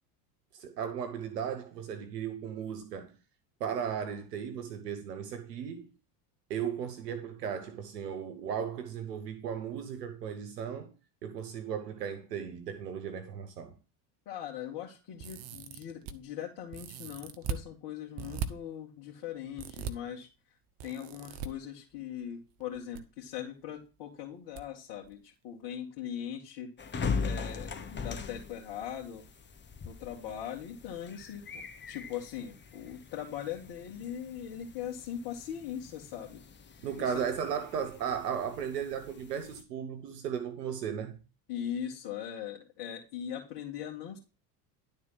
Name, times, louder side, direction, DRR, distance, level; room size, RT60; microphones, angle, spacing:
voice 1, 0.5-3.1 3.6-5.9 6.5-10.9 11.2-13.7 36.8-41.2, right 8 dB, 85° right, 1.3 m, -36 dB
voice 2, 14.3-20.3 20.8-26.7 27.2-29.2 29.8-36.4 37.0-37.2 41.5-44.2, left 9 dB, 55° left, 2.2 m, -40 dB
sound 1, 15.2-16.1 16.7-17.6 18.2-18.5 19.6-19.9 20.8-21.5 22.6-23.0 23.3-23.4 24.6-24.7 25.0-25.1, right 6 dB, 60° right, 1.3 m, -38 dB
sound 2, 26.8-39.6, left 5 dB, 25° left, 1.2 m, -41 dB
11.5 x 4.3 x 5.7 m
hypercardioid pair, 75°, 47 cm